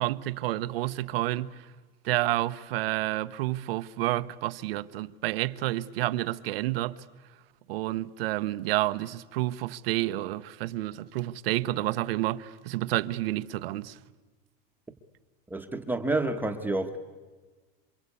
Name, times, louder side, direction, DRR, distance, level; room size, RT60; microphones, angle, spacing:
voice 1, 0.0-1.7 2.0-7.0 7.7-14.0, right 16 dB, 85° right, 1.0 m, -29 dB
voice 2, 15.5-17.0, right 2 dB, 5° right, 1.1 m, -29 dB
27.5 x 24.5 x 8.4 m
supercardioid pair, 155°, 29 cm